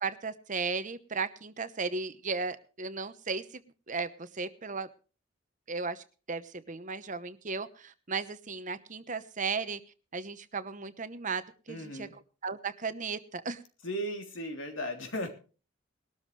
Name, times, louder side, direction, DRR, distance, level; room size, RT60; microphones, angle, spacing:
voice 1, 0.0-3.4 3.9-4.9 5.7-9.8 10.1-13.6, right 4 dB, 40° right, 12 dB, 1.0 m, -35 dB
voice 2, 11.7-12.1 13.8-15.3, equal, 70° left, 4 dB, 3.4 m, -36 dB
20.0 x 13.0 x 3.3 m, 0.36 s
head